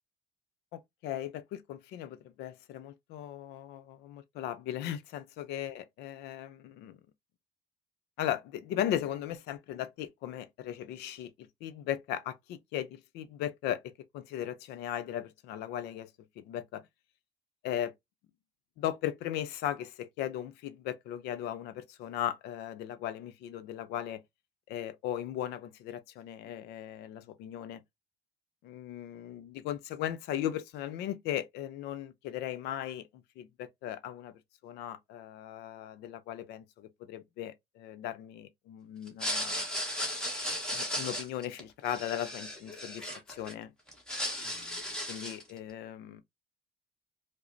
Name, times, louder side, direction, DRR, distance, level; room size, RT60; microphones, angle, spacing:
voice 1, 0.7-7.0 8.2-16.1 16.4-16.8 17.6-17.9 18.8-24.2 24.7-27.8 28.6-34.3 34.6-39.7 40.7-43.7 44.4-44.8 45.1-46.2, left 11 dB, 85° left, 0.6 m, -37 dB
sound 1, 39.1-43.5 43.9-45.5, equal, 5° left, 1.1 m, -35 dB
4.9 x 2.0 x 2.6 m
cardioid pair, 175°, 17 cm